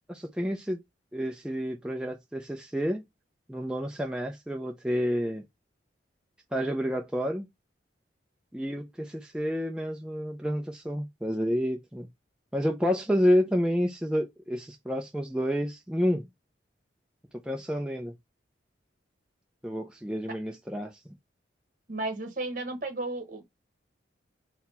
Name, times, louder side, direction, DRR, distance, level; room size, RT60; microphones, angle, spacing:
voice 1, 0.1-0.8 1.1-3.0 3.5-5.4 6.5-7.4 8.5-12.1 12.5-16.2 17.5-18.1 19.6-20.9, equal, 5° right, 0.5 m, -29 dB
voice 2, 21.9-23.4, right 2 dB, 45° right, 1.2 m, -33 dB
4.2 x 2.2 x 4.2 m
head